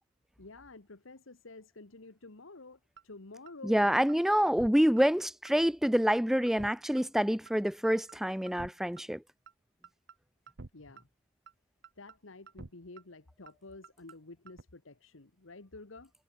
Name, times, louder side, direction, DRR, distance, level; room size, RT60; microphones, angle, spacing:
voice 1, 0.4-3.9 10.7-11.1 12.0-16.1, left 3 dB, 75° left, 1.5 m, -50 dB
sound 1, 3.0-3.1 3.5-3.6 3.8-4.1 4.5-4.7 5.0-5.1 5.5-5.6 5.8-6.1 6.5-6.7 7.0-7.1 7.5-7.6 7.8-8.1 8.5-8.7 9.0-9.1 9.5-9.6 9.8-10.1 10.5-10.7 11.0-11.1 11.5-11.6 11.8-12.1 12.5-12.7 13.0-13.1 13.5-13.6 13.8-14.1 14.5-14.6, right 3 dB, 55° right, 0.9 m, -49 dB
voice 2, 3.6-9.2, equal, ahead, 0.4 m, -27 dB
head